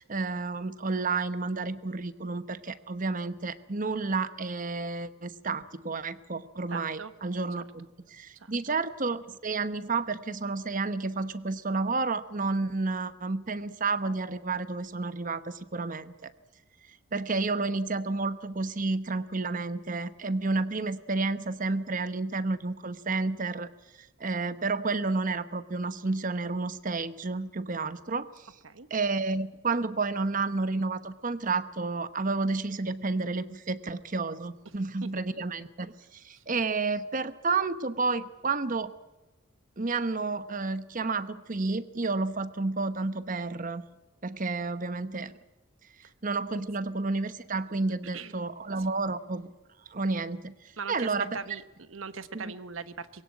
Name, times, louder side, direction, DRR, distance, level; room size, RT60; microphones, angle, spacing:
voice 1, 0.0-16.3 17.1-23.7 24.0-28.5 28.9-38.9 39.8-43.8 44.2-45.3 46.2-49.5 49.9-51.4 52.3-52.5, right 3 dB, 40° right, 13 dB, 1.0 m, -31 dB
voice 2, 6.7-7.1 8.3-8.5 28.6-28.9 34.7-34.8 35.0-35.2 36.3-36.4 48.1-48.3 50.8-53.2, right 5 dB, 85° right, 12 dB, 1.1 m, -40 dB
22.5 x 16.5 x 8.7 m, 1.1 s
head